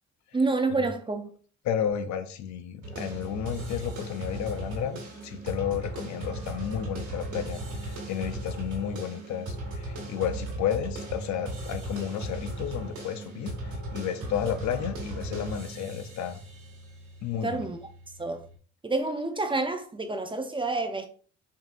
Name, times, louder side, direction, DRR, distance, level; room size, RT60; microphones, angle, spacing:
voice 1, 0.3-1.3 17.4-17.8 18.2-18.5 18.8-21.1, right 3 dB, 15° right, 0.5 m, -28 dB
voice 2, 1.6-13.6 13.9-16.4 17.2-17.7, left 9 dB, 65° left, 0.6 m, -32 dB
sound 1, 2.8-18.6, right 1 dB, 75° right, 2.0 m, -37 dB
5.3 x 2.7 x 2.5 m
cardioid pair, 90°, 30 cm